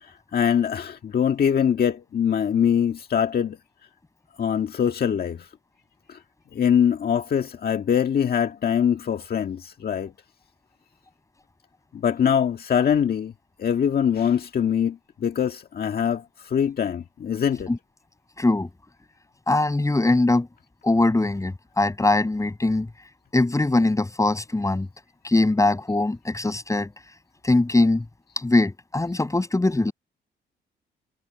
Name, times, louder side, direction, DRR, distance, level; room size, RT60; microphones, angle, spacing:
voice 1, 0.0-3.6 4.4-5.5 6.1-6.2 6.5-10.1 11.9-13.3 13.6-17.7, left 8 dB, 50° left, 1.7 m, -23 dB
voice 2, 18.4-18.7 19.5-20.5 20.8-22.9 23.3-24.9 25.2-26.9 27.4-28.0 28.4-29.9, left 2 dB, 15° left, 7.4 m, -21 dB
cardioid pair, 90°, 20 cm